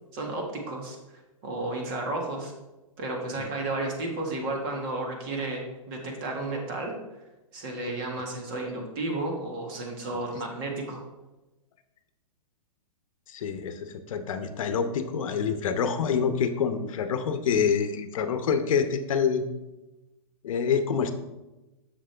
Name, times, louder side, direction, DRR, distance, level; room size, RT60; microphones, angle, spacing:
voice 1, 0.1-1.0 1.4-2.5 3.0-6.9 7.5-11.0, right 2 dB, 40° right, 1 dB, 1.8 m, -32 dB
voice 2, 13.3-19.5 20.4-21.1, left 6 dB, 65° left, 9 dB, 0.8 m, -26 dB
7.5 x 6.5 x 3.4 m, 1.0 s
hypercardioid pair, 155°, 18 cm